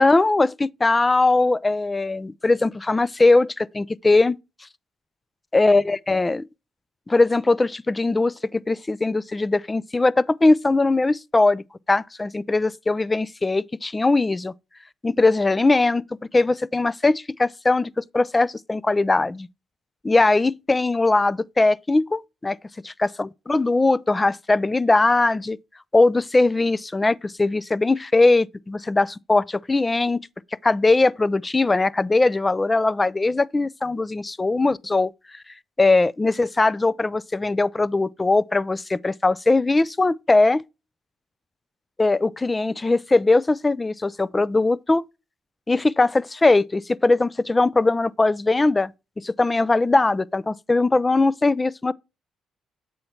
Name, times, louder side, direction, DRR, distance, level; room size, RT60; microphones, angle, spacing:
voice 1, 0.0-4.4 5.5-6.4 7.1-14.5 15.0-16.0 16.3-19.5 20.0-22.6 23.2-25.6 25.9-30.2 30.6-35.1 35.8-40.6 42.0-45.0 45.7-48.9 49.2-51.9, left 2 dB, 20° left, 0.3 m, -20 dB
7.7 x 4.3 x 4.2 m
cardioid pair, 90°, 0 cm